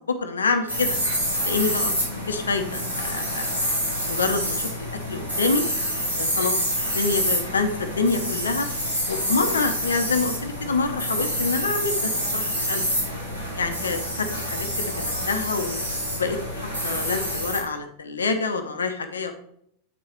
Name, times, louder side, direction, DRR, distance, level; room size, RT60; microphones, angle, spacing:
voice 1, 0.1-0.9 1.4-2.0 2.3-3.5 4.0-4.7 5.1-5.6 6.2-6.6 6.9-8.7 9.1-12.8 13.6-14.7 15.3-15.8 16.1-19.3, left 4 dB, 70° left, 7 dB, 0.7 m, -26 dB
sound 1, 0.7-17.6, equal, 80° right, 2.3 m, -27 dB
7.7 x 4.7 x 4.4 m, 0.71 s
figure-of-eight pair, 90°, 0 cm